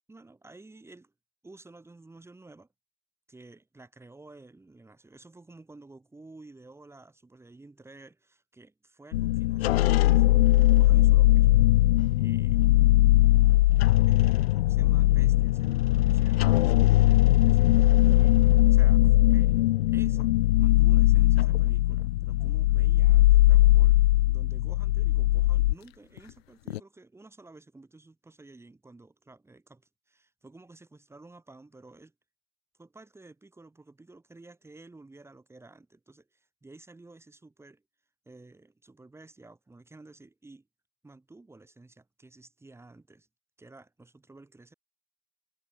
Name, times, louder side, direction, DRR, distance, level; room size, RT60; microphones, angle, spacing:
voice 1, 0.1-1.1 1.4-2.7 3.3-11.5 12.1-12.6 14.1-17.6 18.0-19.0 19.3-19.6 19.9-20.3 20.6-24.0 24.3-32.1 32.8-37.8 38.3-40.7 41.0-43.3 43.6-44.7, right 2 dB, 10° right, 4.3 m, -52 dB
sound 1, 9.1-25.7 26.2-26.3 26.7-26.8, left 17 dB, 65° left, 0.5 m, -20 dB
hypercardioid pair, 105°, 33 cm